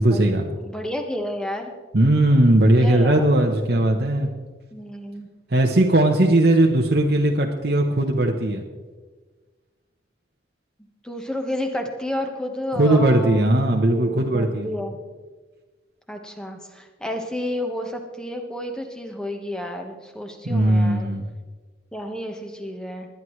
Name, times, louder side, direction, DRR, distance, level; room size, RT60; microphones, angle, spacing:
voice 1, 0.0-0.5 1.9-4.3 5.5-8.6 12.7-14.8 20.4-21.3, right 1 dB, 60° right, 1 dB, 1.0 m, -18 dB
voice 2, 0.6-1.7 2.6-3.3 4.7-5.3 11.0-13.5 13.9-15.0 16.1-21.1 21.9-23.1, left 1 dB, 5° left, 3 dB, 1.3 m, -31 dB
20.5 x 10.5 x 3.2 m, 1.3 s
head